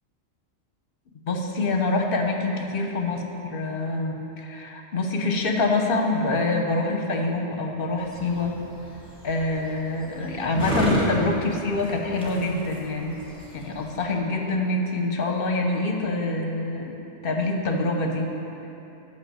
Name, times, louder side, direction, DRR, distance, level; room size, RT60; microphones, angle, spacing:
voice 1, 1.3-8.6 9.2-13.2 13.5-17.0 17.2-18.3, left 2 dB, 45° left, 2 dB, 1.0 m, -26 dB
sound 1, 8.0-14.0, left 1 dB, 5° left, 1.6 m, -30 dB
8.9 x 6.1 x 7.1 m, 3.0 s
omnidirectional pair, 1.4 m